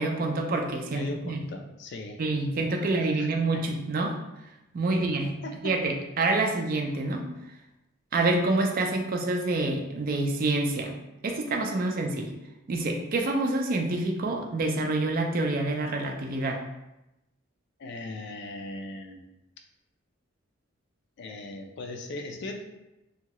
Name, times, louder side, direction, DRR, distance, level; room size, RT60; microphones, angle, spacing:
voice 1, 0.0-1.4 2.2-4.2 4.7-5.4 5.6-7.3 8.1-10.9 11.2-12.3 12.7-16.6, right 2 dB, 45° right, 3 dB, 0.4 m, -27 dB
voice 2, 0.9-2.2 2.5-3.6 4.9-5.1 5.4-5.8 17.8-19.2 21.2-22.6, left 2 dB, 55° left, 4 dB, 0.4 m, -39 dB
2.7 x 2.2 x 2.9 m, 0.92 s
head